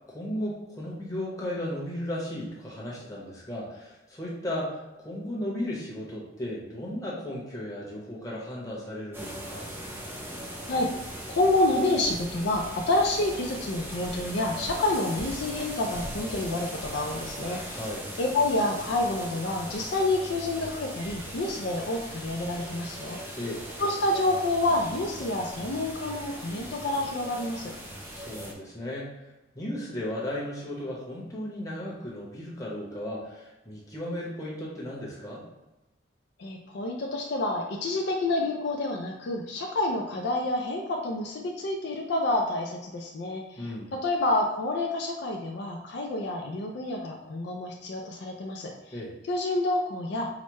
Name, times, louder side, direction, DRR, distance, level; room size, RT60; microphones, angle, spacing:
voice 1, 0.1-9.7 17.7-18.1 23.4-23.6 28.1-29.1 29.5-35.4 43.6-43.9 48.9-49.1, left 1 dB, 20° left, -6 dB, 1.0 m, -35 dB
sound 1, 9.1-28.5, equal, 10° right, 0.5 m, -39 dB
voice 2, 11.3-17.9 18.2-23.4 23.8-27.7 36.4-49.0 49.3-50.3, left 2 dB, 65° left, 0 dB, 0.4 m, -28 dB
4.8 x 2.1 x 3.0 m, 1.0 s
head